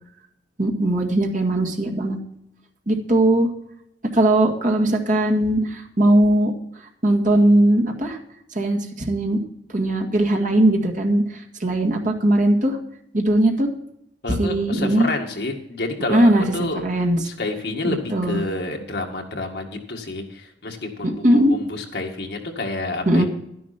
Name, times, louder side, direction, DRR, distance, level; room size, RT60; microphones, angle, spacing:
voice 1, 0.6-2.2 2.9-3.5 4.1-6.5 7.0-8.2 8.5-9.4 9.7-12.8 13.1-13.7 14.4-15.1 16.1-16.4 16.8-17.2 17.8-18.4 21.0-21.5 23.1-23.3, right 1 dB, 45° right, 1 dB, 1.9 m, -19 dB
voice 2, 14.2-16.8 17.2-23.3, left 2 dB, 65° left, 2 dB, 1.9 m, -29 dB
12.0 x 10.5 x 4.3 m, 0.78 s
head